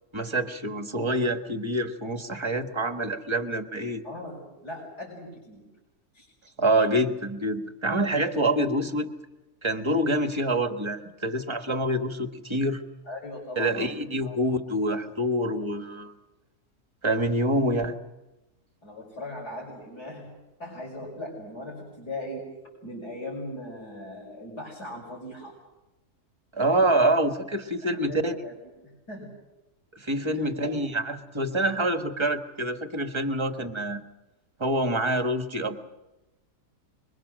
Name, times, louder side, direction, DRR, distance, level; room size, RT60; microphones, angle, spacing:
voice 1, 0.1-4.0 6.6-9.1 9.6-12.8 13.6-16.1 17.0-17.9 26.5-28.3 29.9-34.0 34.6-35.8, right 1 dB, 20° right, 6 dB, 1.3 m, -26 dB
voice 2, 4.0-5.7 6.1-6.3 13.0-14.4 18.8-20.3 20.6-22.5 22.8-25.5 27.9-28.5 28.8-29.3 30.3-30.7, left 1 dB, 90° left, -3 dB, 6.4 m, -39 dB
26.0 x 23.0 x 6.4 m, 1.0 s
omnidirectional pair, 1.7 m